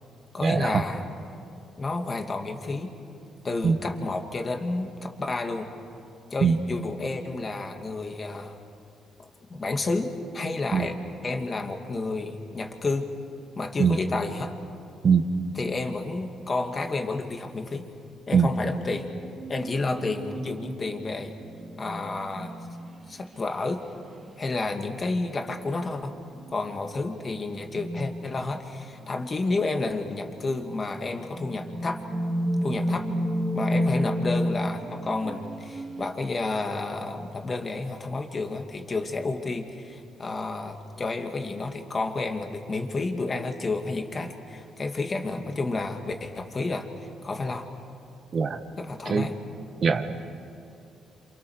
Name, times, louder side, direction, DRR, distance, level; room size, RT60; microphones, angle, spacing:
voice 1, 0.3-1.1 1.8-2.9 3.4-5.7 6.3-8.6 9.2-10.9 11.2-13.1 13.6-14.5 15.5-17.9 18.3-19.1 19.5-21.3 21.8-22.6 23.1-23.8 24.4-26.2 26.5-32.0 32.6-33.1 33.5-47.7 48.8-49.4, left 3 dB, 35° left, 4 dB, 2.6 m, -30 dB
sound 1, 18.8-23.1 24.3-24.5 25.4-25.9 26.4-26.8 27.2-28.8 29.1-30.0 30.8-30.9 31.2-36.1, equal, 35° right, 2.4 m, -31 dB
voice 2, 49.8-50.2, right 6 dB, 50° right, 7 dB, 1.7 m, -21 dB
29.5 x 27.5 x 6.6 m, 2.5 s
cardioid pair, 90°, 0 cm